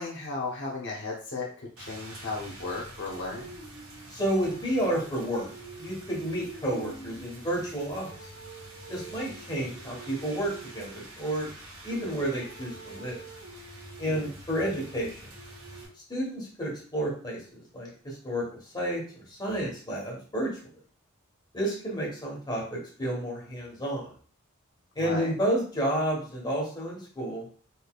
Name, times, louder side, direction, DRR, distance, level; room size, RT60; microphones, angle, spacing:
voice 1, 0.0-3.5 14.1-14.3 25.0-25.3, left 3 dB, 60° left, -2 dB, 0.9 m, -35 dB
Rain, 1.8-15.9, right 2 dB, 80° right, 1.4 m, -45 dB
voice 2, 4.1-5.5 5.8-8.1 8.9-11.5 11.8-13.2 14.0-15.2 16.1-17.4 17.7-20.5 21.5-24.1 24.9-27.4, right 1 dB, 20° left, -4 dB, 1.3 m, -31 dB
4.1 x 3.3 x 2.4 m, 0.43 s
head